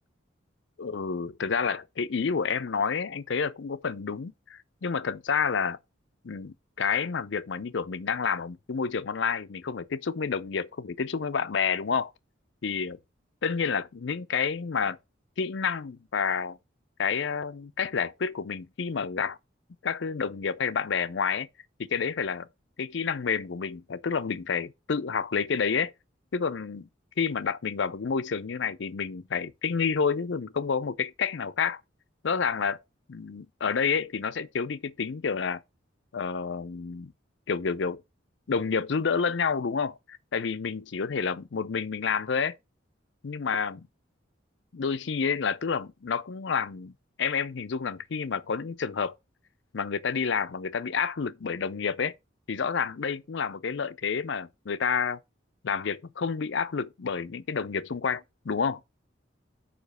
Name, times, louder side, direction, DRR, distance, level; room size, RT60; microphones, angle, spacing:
voice 1, 0.8-5.8 6.2-12.1 12.6-13.0 13.4-15.0 15.4-16.6 17.0-19.4 19.8-21.5 21.8-22.5 22.8-25.9 26.3-26.9 27.2-31.8 32.2-32.8 33.1-35.6 36.1-37.1 37.5-38.0 38.5-39.9 40.3-42.6 43.2-43.9 44.7-46.9 47.2-49.1 49.7-52.1 52.5-55.2 55.6-58.8, left 6 dB, 70° left, 0.5 m, -29 dB
5.1 x 4.9 x 6.4 m
head